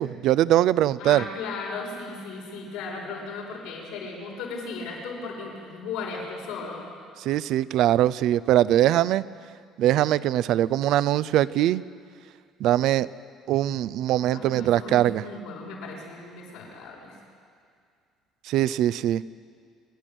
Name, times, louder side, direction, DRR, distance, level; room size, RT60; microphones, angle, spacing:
voice 1, 0.0-1.3 7.2-9.2 9.8-11.8 12.6-13.1 13.5-15.2 18.5-19.2, right 13 dB, 70° right, 18 dB, 0.5 m, -22 dB
voice 2, 1.0-6.8 14.3-17.2, left 4 dB, 90° left, -3 dB, 6.4 m, -36 dB
28.0 x 11.5 x 9.2 m, 2.2 s
cardioid pair, 125°, 0 cm